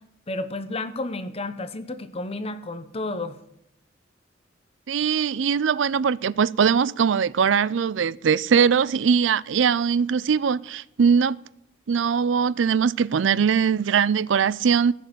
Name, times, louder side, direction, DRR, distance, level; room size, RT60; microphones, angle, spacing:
voice 1, 0.3-3.4, left 2 dB, 35° left, 0.9 m, -31 dB
voice 2, 4.9-11.4 11.9-14.9, right 6 dB, 80° right, 0.4 m, -21 dB
15.0 x 6.7 x 8.3 m
head